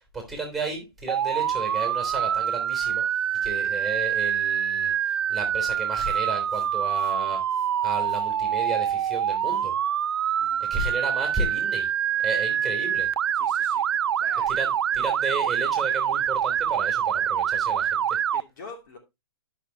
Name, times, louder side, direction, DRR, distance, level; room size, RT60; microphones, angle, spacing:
voice 1, 0.1-3.0 3.4-7.4 7.8-9.7 10.7-11.9 12.2-13.1 14.5-18.2, right 2 dB, ahead, 3.4 m, -33 dB
Motor vehicle (road) / Siren, 1.1-18.4, right 9 dB, 85° right, 0.4 m, -25 dB
voice 2, 10.4-10.7 13.3-13.9 14.2-14.5 18.3-19.0, left 4 dB, 50° left, 2.9 m, -44 dB
13.0 x 6.0 x 2.8 m
hypercardioid pair, 145°, 13 cm